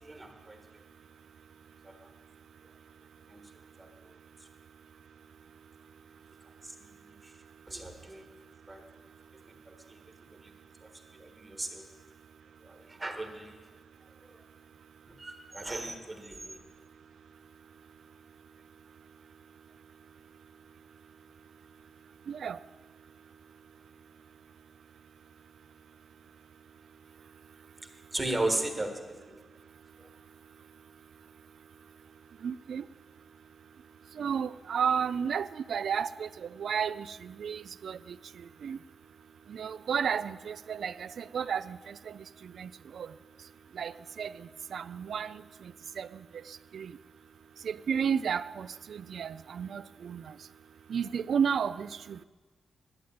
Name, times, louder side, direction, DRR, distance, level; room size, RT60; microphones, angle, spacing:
voice 1, 0.0-0.6 1.8-1.9 3.3-3.4 3.8-3.9 6.6-7.3 7.7-8.3 8.7-8.8 9.7-10.0 10.4-10.5 10.8-11.9 12.6-13.6 14.2-14.4 15.2-16.6 28.1-29.4 30.0-30.1, right 2 dB, 20° right, 1.5 m, -36 dB
voice 2, 22.3-22.6 32.4-32.8 34.2-36.3 36.6-38.0 38.6-38.8 39.5-42.1 42.6-43.1 43.8-44.3 44.7-45.4 46.0-46.1 46.7-46.9 47.6-50.2 50.9-52.2, right 7 dB, 70° right, 0.3 m, -32 dB
11.5 x 7.8 x 8.8 m
wide cardioid pair, 125°, 0 cm